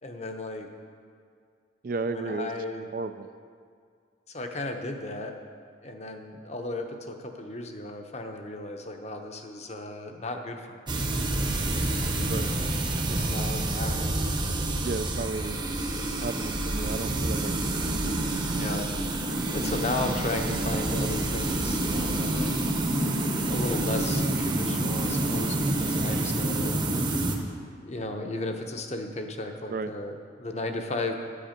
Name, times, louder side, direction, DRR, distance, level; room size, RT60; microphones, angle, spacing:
voice 1, 0.0-0.7 2.1-2.9 4.3-5.4 5.8-10.8 12.4-14.1 18.6-18.9 19.5-22.5 23.5-26.8 27.8-31.2, left 2 dB, 35° left, 4 dB, 0.8 m, -35 dB
voice 2, 1.8-2.5 2.9-3.3 12.3-12.5 14.8-15.6 16.2-17.5 18.2-18.6 29.7-29.9, right 3 dB, 50° right, 10 dB, 0.4 m, -33 dB
sound 1, 10.9-27.4, right 1 dB, 25° right, 0.8 m, -28 dB
12.0 x 8.3 x 5.1 m, 2.2 s
head